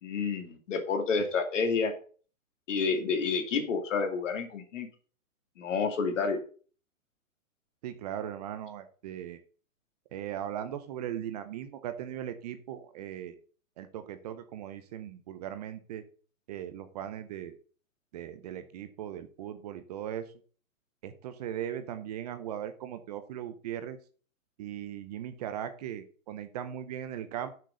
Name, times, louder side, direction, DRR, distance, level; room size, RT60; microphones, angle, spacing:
voice 1, 0.0-1.9 2.7-4.9 5.6-6.4, left 5 dB, 60° left, 6 dB, 2.4 m, -29 dB
voice 2, 7.8-9.4 10.1-13.4 13.8-16.0 16.5-17.6 18.1-20.3 21.0-24.0 24.6-27.6, right 10 dB, 30° right, 10 dB, 0.7 m, -38 dB
6.6 x 6.1 x 6.7 m, 0.41 s
hypercardioid pair, 145°, 42 cm